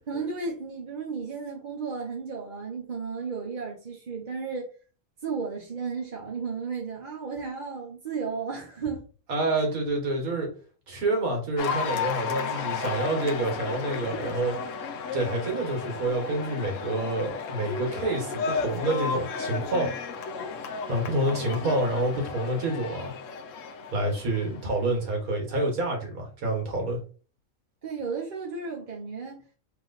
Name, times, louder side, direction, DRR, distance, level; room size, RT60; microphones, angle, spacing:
voice 1, 0.1-4.7 5.2-9.0 24.5-24.6 27.8-29.4, right 5 dB, 40° right, 0.8 m, -34 dB
voice 2, 9.3-10.5 10.9-14.5 15.1-19.9 20.9-23.1 23.9-27.0, right 2 dB, 85° right, 1.8 m, -28 dB
Cheering / Applause, 11.6-25.0, left 5 dB, 70° left, 0.9 m, -33 dB
3.3 x 3.0 x 4.0 m
omnidirectional pair, 1.5 m